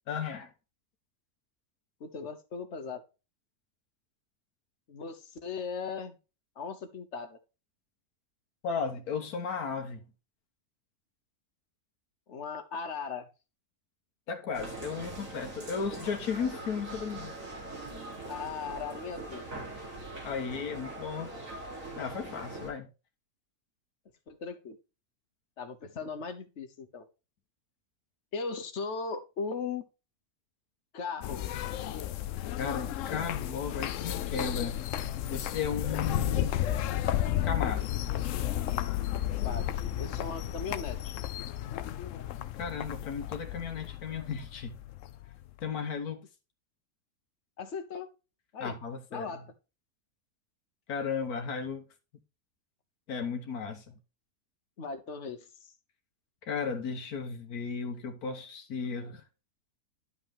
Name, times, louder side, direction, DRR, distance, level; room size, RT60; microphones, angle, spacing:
voice 1, 0.1-0.5 8.6-10.1 14.3-17.3 20.2-21.3 22.0-22.9 32.6-34.8 35.3-36.6 37.4-37.8 42.6-44.8 45.6-46.2 48.6-49.3 50.9-51.8 53.1-54.0 56.4-59.2, left 6 dB, 90° left, 1.5 m, -35 dB
voice 2, 2.0-3.0 4.9-6.2 6.6-7.4 12.3-13.3 18.3-19.5 24.3-24.8 25.6-27.0 28.3-29.9 30.9-31.4 39.4-39.7 40.0-41.2 47.6-48.1 48.5-48.8 49.1-49.4 54.8-55.5, left 5 dB, 55° left, 1.3 m, -38 dB
sound 1, 14.5-22.7, right 2 dB, 60° right, 3.3 m, -42 dB
sound 2, 31.2-45.6, left 12 dB, 70° left, 0.9 m, -33 dB
11.0 x 5.5 x 3.4 m
omnidirectional pair, 1.6 m